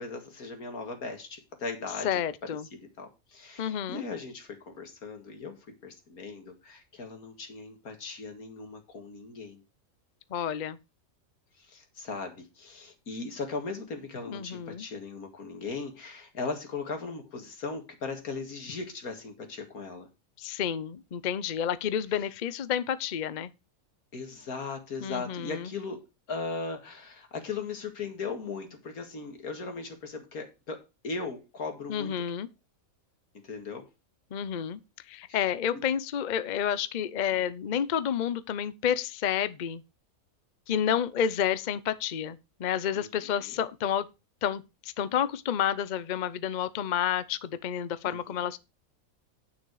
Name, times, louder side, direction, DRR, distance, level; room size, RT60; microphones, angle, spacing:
voice 1, 0.0-5.6 5.8-9.6 11.6-20.1 22.1-22.3 24.1-26.0 26.3-32.3 33.3-33.9 35.3-35.4 35.7-35.8 37.3-37.4 42.9-43.6 48.0-48.5, left 4 dB, 90° left, 2.4 m, -38 dB
voice 2, 2.0-2.6 3.6-4.0 10.3-10.8 14.3-14.8 20.4-23.5 25.0-25.6 31.9-32.5 34.3-34.8 35.1-39.8 40.7-44.0 44.4-44.6 45.0-48.6, left 9 dB, 50° left, 0.6 m, -30 dB
9.4 x 6.9 x 4.7 m
omnidirectional pair, 1.5 m